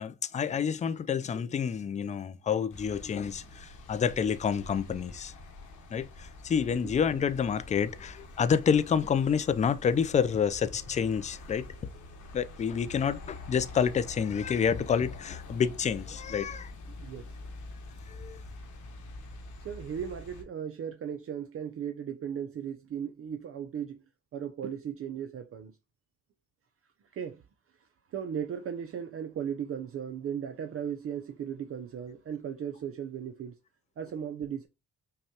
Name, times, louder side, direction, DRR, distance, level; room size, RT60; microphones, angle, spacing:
voice 1, 0.0-5.3 5.9-11.9 12.3-16.7 18.0-18.4, left 7 dB, 25° left, 0.3 m, -28 dB
sound 1, 2.7-20.4, left 2 dB, 75° left, 1.2 m, -46 dB
voice 2, 17.0-17.3 19.6-24.0 24.3-25.8 27.1-27.4 28.1-33.6 34.0-34.7, right 8 dB, 50° right, 0.5 m, -36 dB
5.5 x 2.2 x 2.8 m
cardioid pair, 90°, 30 cm